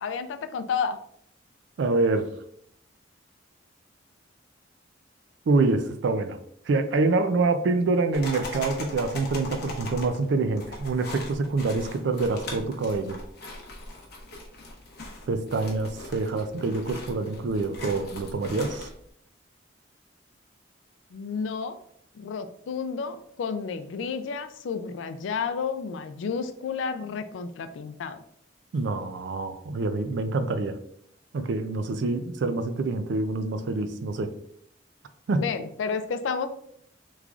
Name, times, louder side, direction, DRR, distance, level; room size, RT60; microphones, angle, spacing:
voice 1, 0.0-1.0 21.1-21.8 22.1-28.2 35.4-36.5, left 5 dB, 75° left, 10 dB, 0.3 m, -31 dB
voice 2, 1.8-2.3 5.5-6.4 6.7-13.2 15.3-18.9 28.7-30.8 31.3-34.4 35.3-35.4, right 3 dB, 65° right, 10 dB, 0.4 m, -26 dB
sound 1, 8.1-19.1, left 1 dB, 55° left, 0.8 m, -40 dB
3.6 x 3.1 x 2.3 m, 0.69 s
head